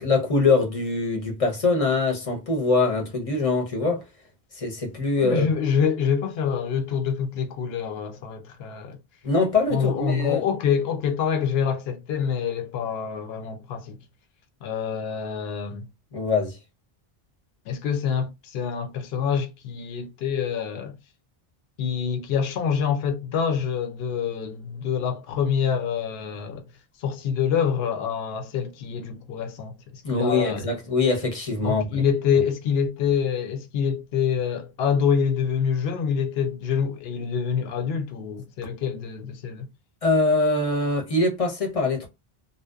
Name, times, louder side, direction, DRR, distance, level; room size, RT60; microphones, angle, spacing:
voice 1, 0.0-4.0 4.6-5.5 9.2-10.4 16.1-16.6 30.0-32.0 40.0-42.1, left 3 dB, 40° left, 0.7 m, -23 dB
voice 2, 5.2-9.0 9.7-14.0 14.6-15.9 17.7-21.0 21.8-26.6 27.0-30.7 31.6-39.7, left 7 dB, 75° left, 0.8 m, -26 dB
2.6 x 2.0 x 2.2 m
omnidirectional pair, 1.0 m